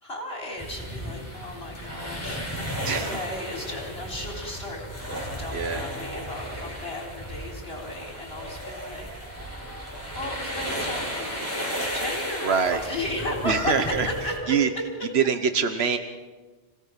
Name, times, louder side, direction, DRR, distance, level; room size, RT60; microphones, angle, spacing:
voice 1, 0.0-2.6 3.0-4.8 5.4-9.3 10.1-14.6, left 2 dB, 70° left, 0 dB, 4.2 m, -34 dB
sound 1, 0.6-14.4, equal, 15° left, 6.1 m, -34 dB
voice 2, 2.8-3.2 5.5-5.8 12.4-12.8 13.4-14.1 14.5-14.7 15.1-16.0, right 6 dB, 85° right, 8 dB, 1.4 m, -24 dB
28.0 x 17.0 x 5.9 m, 1.3 s
omnidirectional pair, 1.1 m